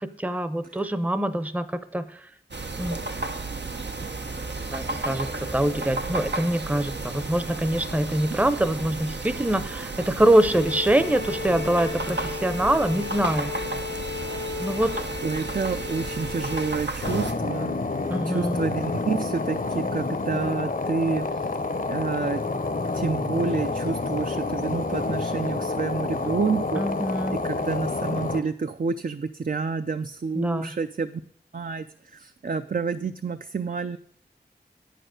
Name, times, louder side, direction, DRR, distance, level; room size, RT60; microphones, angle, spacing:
voice 1, 0.2-2.1 2.8-3.0 4.7-5.3 5.5-13.5 14.6-14.9 18.1-18.6 26.8-27.4 30.4-30.7, right 1 dB, 10° right, 12 dB, 0.6 m, -24 dB
sound 1, 2.5-17.3, right 3 dB, 90° right, 0.8 m, -33 dB
Bowed string instrument, 10.5-16.9, left 5 dB, 85° left, 1.0 m, -35 dB
voice 2, 15.2-17.8 18.2-21.6 21.9-22.4 22.9-26.8 27.3-31.2 31.5-34.0, right 4 dB, 55° right, 9 dB, 0.4 m, -29 dB
sound 2, 17.0-28.4, left 3 dB, 50° left, 0.7 m, -28 dB
8.8 x 6.7 x 6.4 m, 0.63 s
wide cardioid pair, 55°, 17 cm